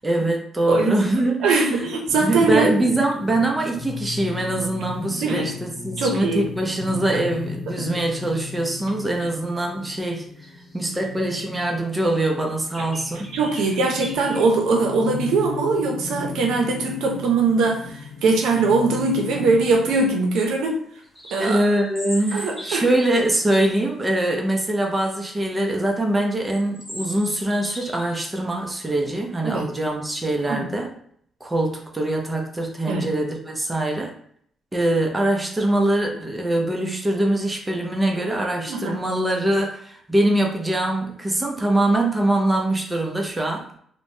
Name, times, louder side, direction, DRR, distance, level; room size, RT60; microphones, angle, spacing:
voice 1, 0.0-1.9 2.2-13.3 21.4-30.9 31.4-34.1 34.7-43.7, right 1 dB, 15° right, 1 dB, 0.6 m, -23 dB
voice 2, 0.7-1.0 1.4-2.7 5.2-5.5 6.0-6.5 7.9-8.0 9.2-9.3 13.2-20.8 21.3-21.6 22.3-22.8 29.4-29.7 30.5-30.7 32.9-33.1 38.7-39.0, right 3 dB, 85° right, 1 dB, 0.6 m, -21 dB
sound 1, 2.1-20.1, left 5 dB, 50° left, 0.8 m, -36 dB
sound 2, 10.4-11.0 11.5-11.6 12.0-12.1 12.7-14.5 15.1-15.2 16.4-17.0 18.4-18.7 19.0-19.1 19.4-19.9 20.3-23.1 24.0-24.3 24.5-25.3 25.8-25.9 26.5-28.2 28.5-28.7, equal, 10° left, 0.8 m, -39 dB
2.9 x 2.1 x 2.6 m, 0.64 s
cardioid pair, 90°, 0 cm